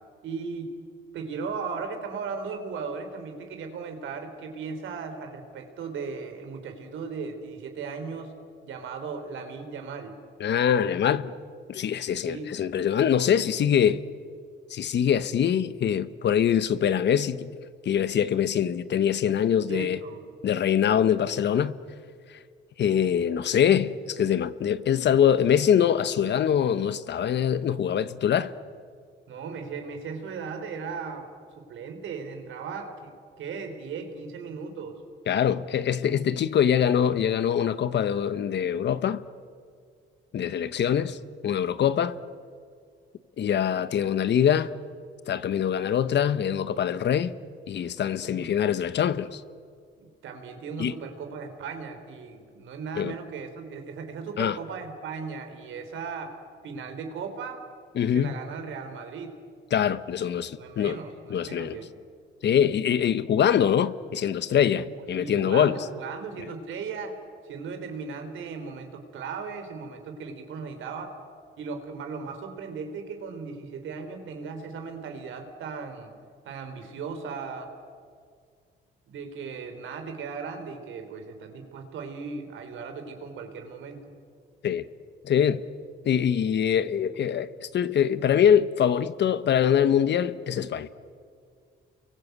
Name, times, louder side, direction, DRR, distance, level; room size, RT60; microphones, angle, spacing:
voice 1, 0.2-0.8 1.1-8.3 8.6-10.1 12.2-12.5 19.7-20.3 29.3-35.0 48.2-48.5 50.0-56.4 56.6-57.6 58.1-59.4 60.6-61.9 64.8-64.9 65.2-67.2 67.4-71.1 71.6-76.1 76.4-77.7 79.1-84.1, right 5 dB, 80° right, 4.1 m, -37 dB
voice 2, 10.4-11.3 11.7-14.0 14.7-17.5 17.8-20.0 20.4-21.8 22.8-28.5 35.3-39.2 40.3-41.2 41.4-42.2 43.4-44.7 45.3-47.3 47.7-49.4 50.8-50.9 53.0-53.1 54.4-54.6 58.0-58.3 59.7-61.0 61.3-61.8 62.4-65.8 84.6-84.9 85.2-85.6 86.0-90.9, left 9 dB, 60° left, 1.1 m, -24 dB
30.0 x 23.5 x 8.2 m
cardioid pair, 90°, 20 cm